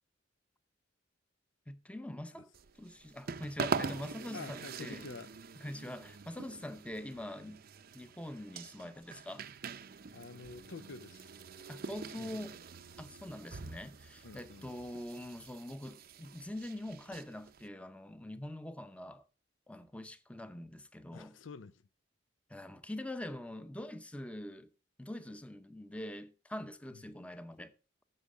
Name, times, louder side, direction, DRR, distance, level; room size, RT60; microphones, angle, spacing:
voice 1, 1.7-2.5 2.8-5.1 5.6-7.6 7.9-9.4 11.7-12.6 13.0-19.3 19.7-21.4 22.5-24.7 25.0-27.7, left 1 dB, 5° left, 0.7 m, -44 dB
sound 1, 2.5-17.7, right 5 dB, 50° right, 0.6 m, -44 dB
voice 2, 4.3-5.3 10.1-11.3 12.2-12.5 14.2-14.7 21.1-21.9 26.9-27.0, left 4 dB, 80° left, 0.6 m, -48 dB
13.5 x 6.2 x 4.9 m
head